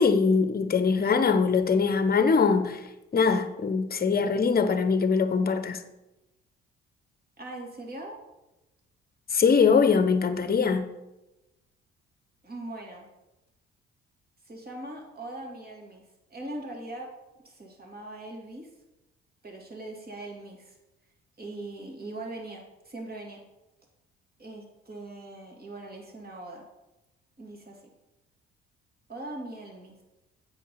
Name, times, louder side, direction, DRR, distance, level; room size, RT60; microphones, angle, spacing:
voice 1, 0.0-2.8 3.1-5.8 9.3-10.9, left 5 dB, 30° left, 0.9 m, -22 dB
voice 2, 7.4-8.2 12.4-13.1 14.4-16.0 16.3-17.1 17.4-18.7 19.4-20.8 21.4-23.4 24.4-26.7 27.4-27.8 29.1-29.9, right 2 dB, 30° right, 2.5 m, -40 dB
8.3 x 4.9 x 5.8 m
hypercardioid pair, 50°, 29 cm